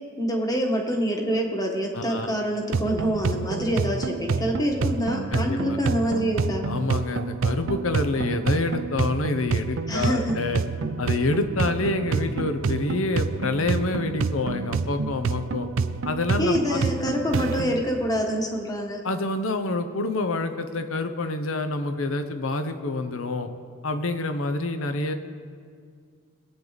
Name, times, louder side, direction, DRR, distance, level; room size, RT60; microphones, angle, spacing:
voice 1, 0.2-6.7 9.9-10.4 16.4-19.1, equal, 20° left, 2 dB, 1.4 m, -26 dB
voice 2, 1.9-2.3 5.3-5.8 6.6-10.6 11.0-15.7 16.0-16.8 19.0-23.5 23.8-25.1, left 2 dB, 75° left, 8 dB, 0.9 m, -27 dB
sound 1, 2.7-17.8, right 4 dB, 65° right, 0.5 m, -28 dB
21.5 x 8.9 x 4.0 m, 2.1 s
head